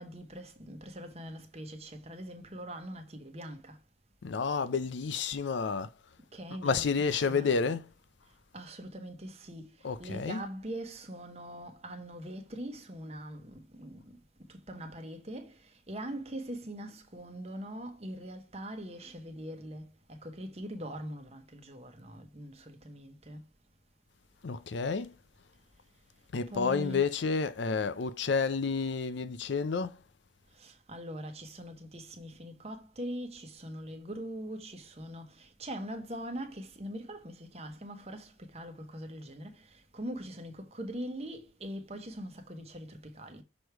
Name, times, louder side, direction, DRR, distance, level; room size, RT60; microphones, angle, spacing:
voice 1, 0.0-3.8 6.3-7.5 8.5-9.7 10.0-14.0 14.7-15.5 15.9-23.4 26.5-27.2 30.6-39.6 39.9-43.4, equal, 35° right, 1.0 m, -42 dB
voice 2, 4.2-5.9 6.6-7.9 9.8-10.4 24.4-25.1 26.3-29.9, left 5 dB, 75° left, 0.5 m, -30 dB
6.2 x 3.3 x 4.6 m
head